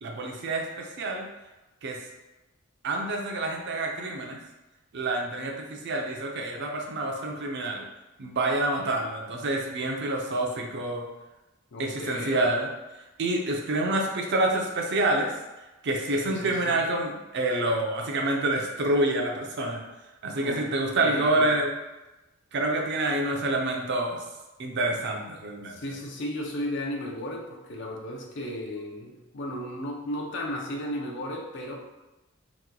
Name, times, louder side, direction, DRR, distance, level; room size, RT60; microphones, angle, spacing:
voice 1, 0.0-1.3 1.8-2.0 2.8-4.4 4.9-7.8 8.2-11.1 11.8-12.7 13.2-15.3 15.8-19.8 20.2-21.7 22.5-24.2 24.6-25.8, right 2 dB, 55° right, 1 dB, 0.5 m, -27 dB
voice 2, 11.7-12.5 16.2-16.8 20.4-20.6 21.0-21.5 25.7-31.7, left 1 dB, 60° left, 0 dB, 0.5 m, -35 dB
2.9 x 2.2 x 3.6 m, 1.0 s
head